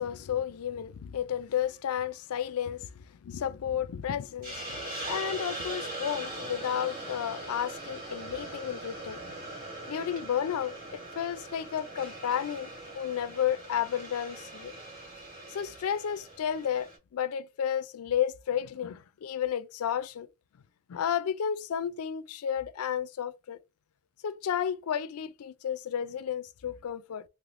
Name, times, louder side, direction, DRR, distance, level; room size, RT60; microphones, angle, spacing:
voice 1, 0.0-9.3 9.9-12.7 12.9-14.7 15.5-20.3 20.9-23.6 24.2-27.2, left 9 dB, 75° left, 0.4 m, -32 dB
Hiss, 4.4-17.0, right 2 dB, 40° right, 1.8 m, -41 dB
3.3 x 3.0 x 2.5 m
head